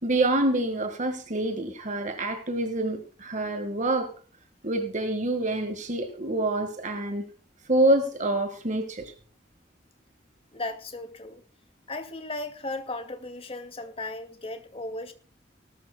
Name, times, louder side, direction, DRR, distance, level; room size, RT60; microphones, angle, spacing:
voice 1, 0.0-4.1 4.6-7.3 7.7-9.1, right 1 dB, 45° right, 1.8 m, -26 dB
voice 2, 10.5-11.4 11.9-15.1, left 2 dB, 35° left, 2.3 m, -36 dB
19.0 x 13.5 x 2.3 m
head